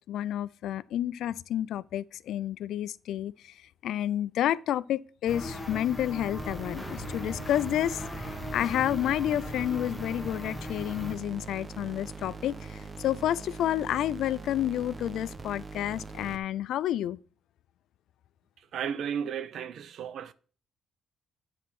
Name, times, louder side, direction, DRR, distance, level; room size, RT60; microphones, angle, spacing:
voice 1, 0.1-3.5 3.8-17.2, left 12 dB, 80° left, 0.3 m, -30 dB
sound 1, 5.3-11.2, equal, 10° left, 1.5 m, -39 dB
sound 2, 6.4-16.4, right 4 dB, 25° right, 0.9 m, -42 dB
voice 2, 18.6-20.3, right 8 dB, 70° right, 0.6 m, -34 dB
9.0 x 4.3 x 5.9 m
cardioid pair, 90°, 0 cm